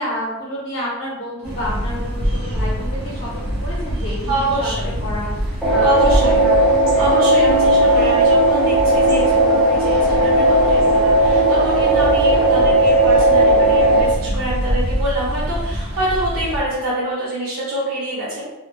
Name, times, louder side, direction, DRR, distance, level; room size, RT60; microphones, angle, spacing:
voice 1, 0.0-6.6 6.9-8.1 9.1-9.4 15.6-15.8, left 1 dB, 50° left, -6 dB, 0.6 m, -30 dB
sound 1, 1.4-16.6, equal, 90° right, 0.9 m, -26 dB
voice 2, 4.3-4.9 5.8-6.4 7.0-18.4, right 1 dB, 65° right, -6 dB, 0.6 m, -25 dB
sound 2, 5.6-14.0, right 1 dB, ahead, 0.4 m, -15 dB
2.1 x 2.1 x 3.0 m, 1.1 s
head